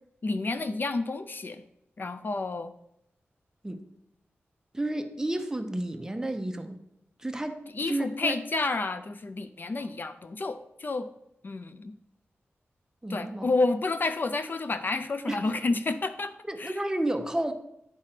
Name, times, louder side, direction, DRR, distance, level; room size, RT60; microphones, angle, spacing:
voice 1, 0.2-1.6 2.0-2.7 7.7-11.1 11.4-11.9 13.1-16.3 16.6-16.8, left 3 dB, 45° left, 10 dB, 0.4 m, -30 dB
voice 2, 4.7-6.8 7.2-7.6 7.9-8.4 9.8-9.9 13.0-13.5 15.3-15.4 16.5-17.5, right 1 dB, 15° right, 6 dB, 0.7 m, -31 dB
9.7 x 3.2 x 5.8 m, 0.79 s
wide cardioid pair, 85°, 4 cm